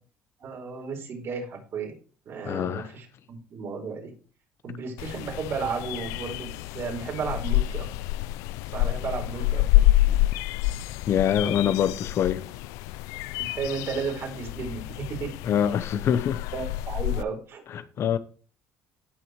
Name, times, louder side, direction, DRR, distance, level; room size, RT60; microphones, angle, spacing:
voice 1, 0.4-1.9 2.2-4.1 4.6-7.9 8.7-10.2 11.4-11.7 13.4-15.3 16.5-17.6, right 5 dB, 55° right, 5.0 m, -34 dB
voice 2, 2.5-2.9 11.1-12.4 15.4-16.4 17.7-18.2, left 9 dB, 55° left, 0.9 m, -24 dB
sound 1, 5.0-17.2, left 16 dB, 85° left, 0.3 m, -27 dB
17.0 x 6.0 x 3.2 m
cardioid pair, 95°, 5 cm